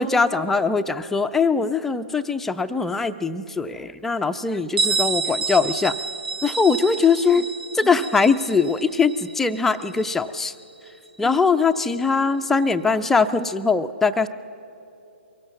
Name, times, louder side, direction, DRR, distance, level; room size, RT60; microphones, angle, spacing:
voice 1, 0.0-6.0 6.4-7.5 7.7-10.5 11.2-14.3, left 4 dB, 5° left, 8 dB, 0.4 m, -21 dB
Bell, 4.8-10.3, right 4 dB, 45° right, 0.8 m, -29 dB
23.5 x 17.0 x 7.1 m, 2.8 s
figure-of-eight pair, 125°, 7 cm